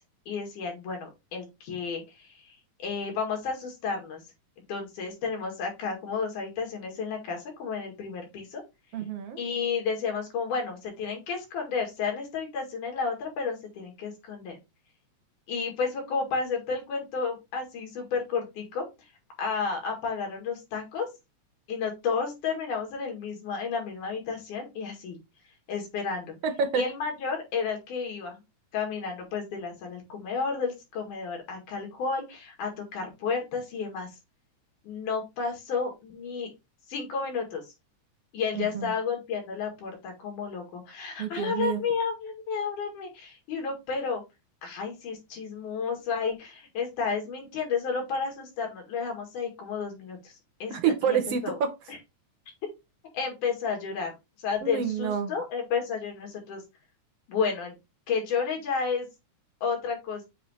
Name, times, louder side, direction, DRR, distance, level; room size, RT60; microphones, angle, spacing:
voice 1, 0.3-4.2 4.7-8.6 9.4-14.6 15.5-18.8 19.4-21.1 21.7-25.2 25.7-26.4 26.8-28.4 28.7-34.2 34.8-36.5 36.9-37.6 38.3-44.2 44.6-50.4 50.6-50.8 51.1-51.6 51.9-52.0 53.1-54.2 54.4-56.6 57.3-57.7 58.1-59.1 59.6-60.2, left 5 dB, 90° left, 1 dB, 3.5 m, -32 dB
voice 2, 8.9-9.4 26.4-26.8 38.5-38.9 41.2-41.8 50.7-51.7 54.6-55.3, right 7 dB, 65° right, 6 dB, 1.7 m, -28 dB
7.2 x 2.7 x 4.8 m, 0.24 s
omnidirectional pair, 3.5 m